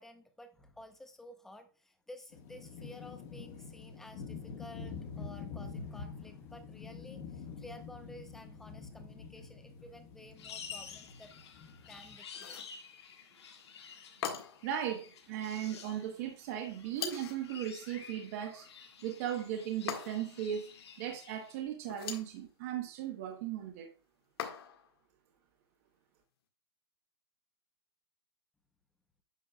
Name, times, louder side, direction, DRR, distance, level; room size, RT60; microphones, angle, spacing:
voice 1, 0.0-11.3 11.8-12.7, left 1 dB, 5° left, 0.7 m, -53 dB
sound 1, 2.3-12.1, left 5 dB, 35° left, 1.6 m, -46 dB
sound 2, 10.4-21.6, left 7 dB, 85° left, 1.9 m, -51 dB
sound 3, 12.3-12.8 14.2-14.7 17.0-17.5 19.9-20.4 21.8-22.4 24.4-24.9, left 8 dB, 65° left, 1.8 m, -40 dB
voice 2, 14.6-18.7 19.0-20.7 21.0-23.9, right 10 dB, 35° right, 1.1 m, -37 dB
9.2 x 6.5 x 2.3 m
hypercardioid pair, 160°, 14 cm